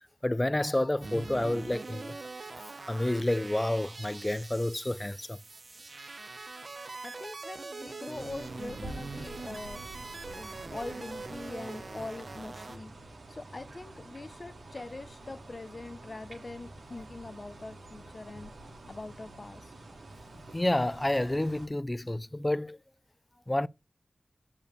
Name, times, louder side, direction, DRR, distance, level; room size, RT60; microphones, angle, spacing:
voice 1, 0.2-2.2 2.9-5.4 20.5-22.8 23.5-23.7, left 1 dB, 25° left, 0.4 m, -29 dB
sound 1, 1.0-12.8, right 3 dB, 60° right, 1.0 m, -43 dB
voice 2, 7.0-9.8 10.3-12.9 13.3-18.5 18.9-19.7, left 2 dB, 50° left, 1.0 m, -43 dB
sound 2, 8.1-21.7, right 2 dB, 80° right, 4.1 m, -48 dB
6.8 x 5.4 x 6.7 m
cardioid pair, 45°, 0 cm